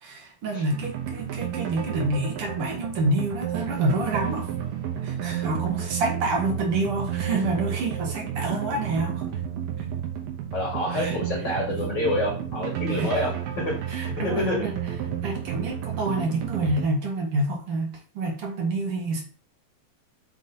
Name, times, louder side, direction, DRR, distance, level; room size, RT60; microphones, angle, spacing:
voice 1, 0.0-4.5 5.0-9.2 10.9-11.2 12.9-13.1 13.9-14.7 15.2-19.2, right 2 dB, 55° right, 0 dB, 1.8 m, -28 dB
sound 1, 0.7-16.9, right 9 dB, 80° right, 2.6 m, -31 dB
voice 2, 10.5-13.7 14.2-14.6, left 1 dB, 35° left, -3 dB, 2.4 m, -27 dB
6.5 x 3.5 x 4.1 m, 0.39 s
omnidirectional pair, 4.0 m